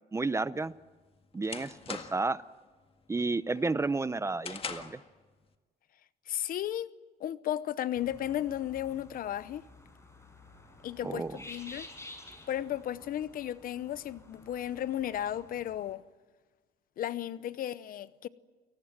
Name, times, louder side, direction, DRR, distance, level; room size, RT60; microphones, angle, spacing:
voice 1, 0.1-0.7 1.3-2.4 3.1-5.0 11.0-11.4, right 3 dB, 15° right, 0.6 m, -31 dB
sound 1, 0.6-2.4 2.8-3.2 3.6-5.1, left 5 dB, 35° left, 1.8 m, -42 dB
voice 2, 6.3-6.9 7.2-9.6 10.8-11.9 12.5-16.0 17.0-18.3, left 11 dB, 55° left, 0.9 m, -34 dB
sound 2, 8.0-15.9, left 2 dB, 15° left, 5.5 m, -52 dB
29.0 x 19.0 x 7.5 m
cardioid pair, 110°, 17 cm